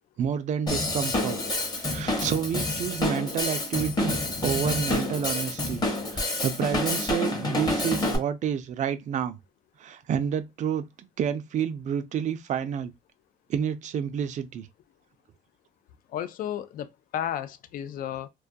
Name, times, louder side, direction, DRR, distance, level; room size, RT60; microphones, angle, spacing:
voice 1, 0.2-1.4 1.8-5.8 6.1-9.4 9.8-10.9 11.2-12.9 13.5-14.7, right 8 dB, 45° right, 0.4 m, -29 dB
Drum kit / Drum, 0.7-8.2, left 2 dB, 25° left, 0.8 m, -28 dB
voice 2, 16.1-18.3, left 10 dB, 55° left, 0.4 m, -33 dB
2.3 x 2.1 x 2.5 m
cardioid pair, 110°, 17 cm